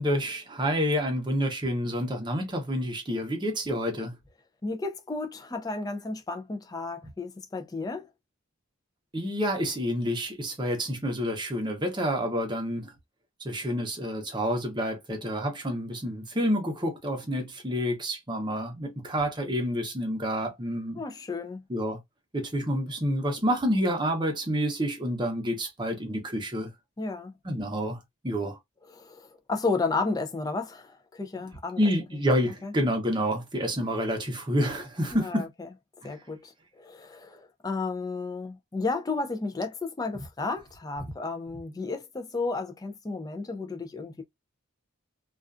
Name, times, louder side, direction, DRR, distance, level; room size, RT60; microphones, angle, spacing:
voice 1, 0.0-4.2 9.1-12.9 13.4-21.0 21.7-22.0 22.3-26.7 27.4-28.0 28.2-28.6 31.8-35.5 36.0-36.1 41.0-41.1, equal, 20° right, 0.7 m, -28 dB
voice 2, 4.6-8.1 21.0-21.6 27.0-27.3 28.9-31.8 32.6-32.7 35.1-35.7 36.0-44.2, left 3 dB, 15° left, 0.4 m, -33 dB
2.4 x 2.3 x 2.4 m
head